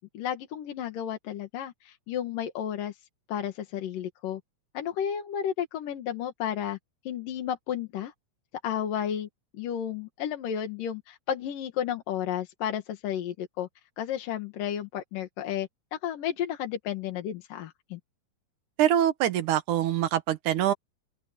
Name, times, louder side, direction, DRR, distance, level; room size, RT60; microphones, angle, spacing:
voice 1, 0.1-3.0 3.3-4.4 4.7-6.8 7.0-8.1 8.6-9.3 9.6-13.7 14.0-18.0, left 9 dB, 85° left, 3.3 m, -32 dB
voice 2, 18.8-20.7, right 11 dB, 75° right, 2.6 m, -24 dB
open air
omnidirectional pair, 3.8 m